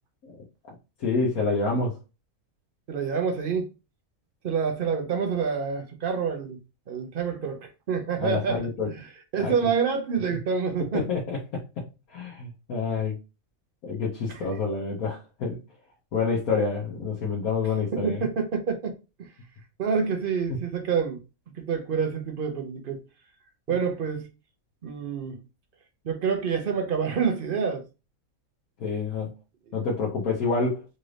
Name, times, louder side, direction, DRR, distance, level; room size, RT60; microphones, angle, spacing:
voice 1, 1.0-2.0 8.2-8.9 9.4-9.5 10.9-11.4 12.1-13.1 13.8-15.6 16.1-18.3 20.5-20.6 28.8-29.3 29.7-30.8, left 4 dB, 90° left, 1.4 m, -27 dB
voice 2, 2.9-3.7 4.4-6.6 6.9-9.0 9.3-11.1 14.3-14.4 17.9-18.9 19.2-19.3 19.8-21.2 21.6-23.0 23.7-24.3 24.8-25.3 26.0-27.8, right 6 dB, 50° right, 0.8 m, -27 dB
4.0 x 2.6 x 3.2 m
omnidirectional pair, 1.5 m